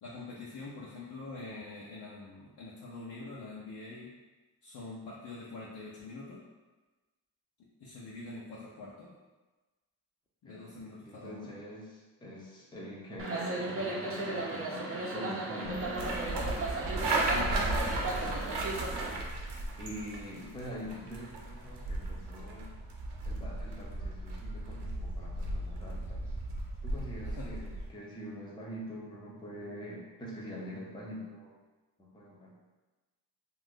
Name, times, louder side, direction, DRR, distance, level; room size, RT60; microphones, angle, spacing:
voice 1, 0.0-4.1 4.6-6.4 7.6-9.1 10.4-11.5 17.3-18.8 27.2-27.5, left 3 dB, 65° left, -7 dB, 0.7 m, -45 dB
voice 2, 11.0-16.6 19.8-22.7 23.2-26.3 26.8-31.6 32.0-32.5, equal, 10° left, -4 dB, 0.7 m, -44 dB
sound 1, 13.2-19.2, right 2 dB, 35° right, 0.6 m, -36 dB
sound 2, 15.6-27.9, right 2 dB, 75° right, 0.7 m, -35 dB
2.5 x 2.5 x 3.5 m, 1.2 s
cardioid pair, 75°, 41 cm